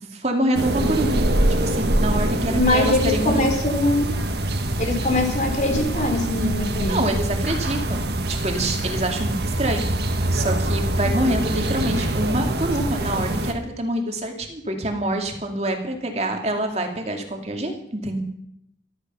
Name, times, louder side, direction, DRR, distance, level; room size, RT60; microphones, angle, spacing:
voice 1, 0.0-1.2 1.6-3.5 6.9-18.2, right 1 dB, 35° right, 4 dB, 2.4 m, -26 dB
sound 1, 0.5-13.5, right 1 dB, 60° right, 1.7 m, -24 dB
voice 2, 2.5-4.0 4.8-7.0, left 2 dB, 40° left, 4 dB, 3.6 m, -22 dB
14.5 x 13.5 x 5.5 m, 0.75 s
head